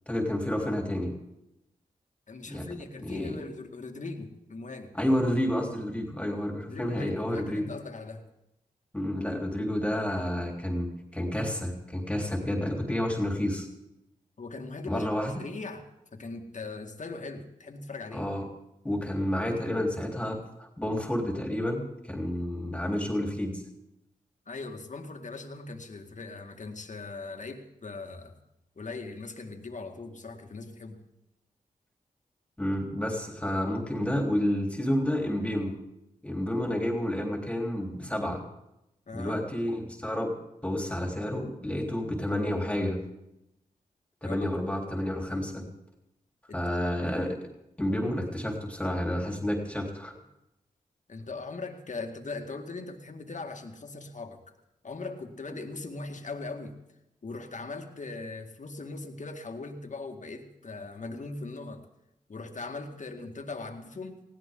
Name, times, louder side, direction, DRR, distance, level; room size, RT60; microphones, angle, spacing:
voice 1, 0.1-1.1 2.5-2.6 3.0-3.4 5.0-7.6 8.9-13.7 14.9-15.3 18.1-18.4 18.8-23.6 32.6-35.7 36.2-38.4 39.1-40.3 40.6-43.0 44.2-45.6 46.5-47.4 47.8-50.1, left 1 dB, 10° left, 1 dB, 3.9 m, -30 dB
voice 2, 2.3-4.9 6.7-8.2 14.4-15.8 16.1-18.2 24.5-28.4 28.8-31.0 39.1-39.4 44.2-44.5 46.5-46.9 51.1-54.4 54.8-56.8 57.2-61.8 62.3-64.2, left 3 dB, 55° left, 4 dB, 2.1 m, -40 dB
19.5 x 16.0 x 3.9 m, 0.87 s
cardioid pair, 45°, 15 cm